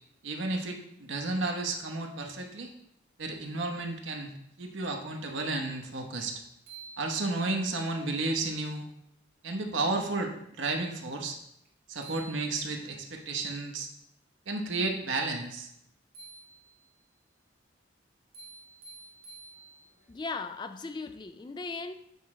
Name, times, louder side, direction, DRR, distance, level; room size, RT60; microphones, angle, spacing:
voice 1, 0.2-2.7 3.2-4.3 4.6-6.4 7.0-8.9 9.4-11.4 11.9-13.9 14.5-15.7, right 3 dB, 85° right, 0.9 m, -32 dB
sound 1, 6.2-6.3 6.7-7.7 11.6-11.7 12.0-13.1 16.1-17.0 18.3-20.1, right 4 dB, 50° right, 1.8 m, -50 dB
voice 2, 20.1-21.9, left 4 dB, 25° left, 0.3 m, -37 dB
8.0 x 3.2 x 4.8 m
head